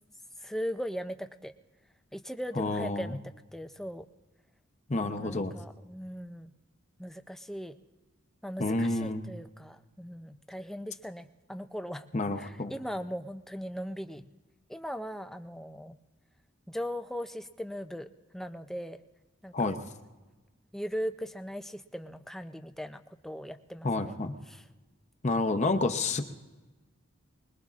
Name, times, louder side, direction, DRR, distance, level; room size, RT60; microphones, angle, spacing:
voice 1, 0.4-1.5 2.1-4.1 5.0-6.5 7.0-7.7 8.4-12.0 12.4-14.3 14.7-16.0 16.7-19.0 19.4-19.7 20.7-24.2 24.5-24.7, equal, ahead, 8 dB, 0.4 m, -39 dB
voice 2, 2.6-3.2 4.9-5.5 8.6-9.2 12.1-12.7 19.5-19.8 23.8-24.3 25.2-26.2, left 2 dB, 35° left, 6 dB, 0.7 m, -29 dB
24.5 x 21.0 x 2.5 m, 1.2 s
head